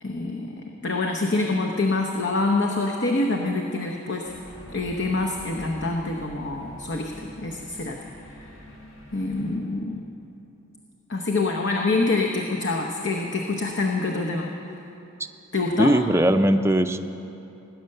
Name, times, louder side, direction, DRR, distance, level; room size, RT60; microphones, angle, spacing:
voice 1, 0.0-4.3 4.7-8.0 8.4-8.5 9.1-10.1 11.1-14.5 15.5-16.0, left 3 dB, 60° left, 1 dB, 1.0 m, -26 dB
sound 1, 4.2-9.6, equal, 90° left, 2.2 m, -45 dB
voice 2, 15.8-17.0, right 1 dB, 15° right, 9 dB, 0.5 m, -19 dB
18.5 x 9.8 x 6.7 m, 2.9 s
head